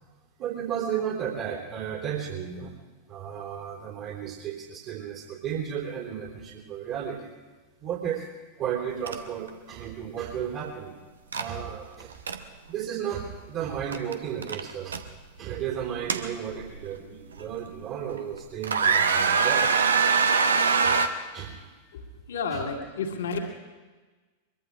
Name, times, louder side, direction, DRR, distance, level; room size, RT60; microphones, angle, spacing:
voice 1, 0.4-2.8 3.1-7.3 7.8-8.3 8.6-11.0 11.3-12.2 12.7-15.0 15.4-19.7 20.8-21.0 21.3-21.6 22.5-22.6, right 8 dB, 40° right, -4 dB, 3.4 m, -33 dB
sound 1, 9.1-9.2 9.5-9.7 11.3-11.5 12.0-12.4 13.9-14.1 14.4-15.0 15.8-16.8 17.4-17.5 18.1-18.4 18.6-21.1, right 5 dB, 70° right, 0.9 m, -23 dB
voice 2, 21.9-23.4, left 4 dB, 60° left, 2 dB, 2.2 m, -31 dB
23.5 x 22.5 x 2.5 m, 1.3 s
figure-of-eight pair, 90°, 0 cm